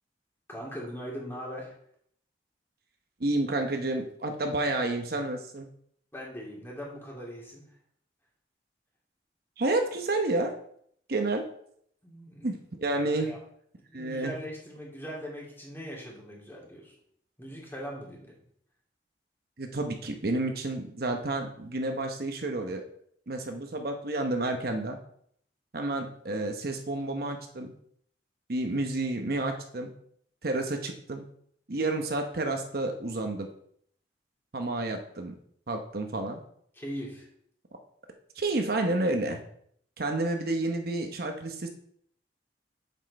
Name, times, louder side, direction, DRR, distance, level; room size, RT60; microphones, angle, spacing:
voice 1, 0.5-1.7 6.1-7.6 12.0-12.5 13.2-13.4 13.9-16.9 17.4-18.3 36.8-37.3, equal, 15° left, -3 dB, 2.6 m, -40 dB
voice 2, 3.2-5.7 9.6-10.5 11.1-11.4 12.4-13.3 13.9-14.3 19.6-22.8 23.3-25.0 25.7-27.7 28.5-29.9 30.4-31.3 31.7-33.5 34.5-35.3 35.7-36.4 38.3-39.4 40.0-41.7, right 2 dB, 60° right, 4 dB, 0.9 m, -30 dB
7.6 x 7.3 x 4.1 m, 0.66 s
head